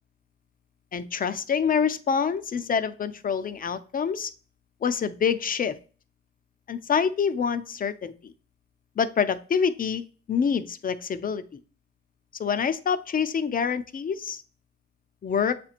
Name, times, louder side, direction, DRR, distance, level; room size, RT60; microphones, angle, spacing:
voice 1, 0.9-4.3 4.8-5.8 6.7-8.3 9.0-11.4 12.4-14.4 15.2-15.6, left 6 dB, 30° left, 11 dB, 0.4 m, -26 dB
7.3 x 2.9 x 2.5 m, 0.39 s
cardioid pair, 90°, 30 cm